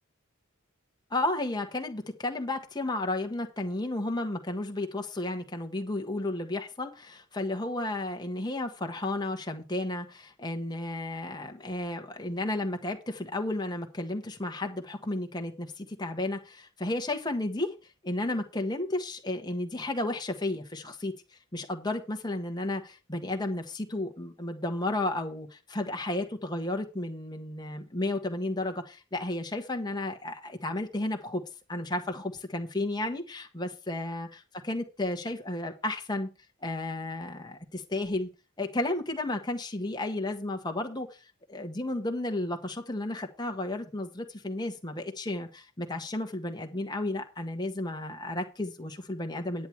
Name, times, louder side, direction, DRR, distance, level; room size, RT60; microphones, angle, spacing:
voice 1, 1.1-17.7 18.0-21.1 21.5-31.4 31.7-36.3 36.6-38.3 38.6-49.7, left 2 dB, 20° left, 4 dB, 1.4 m, -33 dB
10.5 x 8.7 x 4.6 m, 0.31 s
head